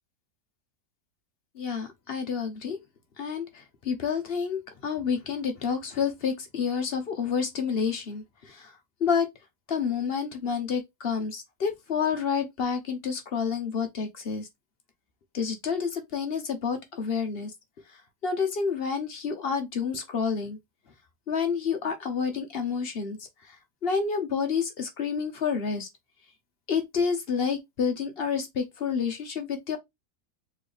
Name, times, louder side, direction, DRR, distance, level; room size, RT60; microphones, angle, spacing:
voice 1, 1.6-2.8 3.2-3.5 3.8-8.7 9.0-9.3 9.7-14.5 15.3-17.5 18.2-20.6 21.3-23.2 23.8-25.9 26.7-29.8, left 6 dB, 45° left, 1.0 m, -29 dB
4.3 x 3.3 x 3.3 m
omnidirectional pair, 1.8 m